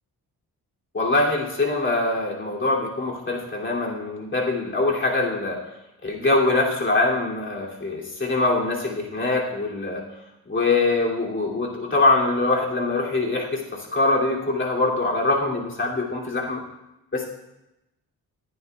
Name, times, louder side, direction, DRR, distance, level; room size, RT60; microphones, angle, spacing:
voice 1, 0.9-5.6 6.0-10.0 10.5-16.6 17.1-17.3, left 2 dB, 35° left, -3 dB, 2.8 m, -23 dB
21.0 x 10.5 x 2.4 m, 0.92 s
wide cardioid pair, 110°, 36 cm